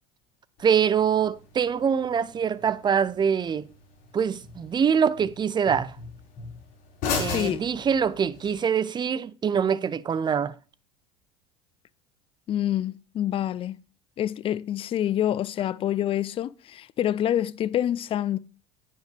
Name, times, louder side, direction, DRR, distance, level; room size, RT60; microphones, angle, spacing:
sound 1, 0.6-8.6, left 5 dB, 60° left, 4.9 m, -38 dB
voice 1, 0.6-3.7 4.1-6.0 7.2-10.5, right 7 dB, 25° right, 0.6 m, -24 dB
voice 2, 7.2-7.6 12.5-13.8 14.2-18.4, left 11 dB, 35° left, 0.4 m, -27 dB
10.0 x 9.2 x 3.4 m
hypercardioid pair, 80°, 17 cm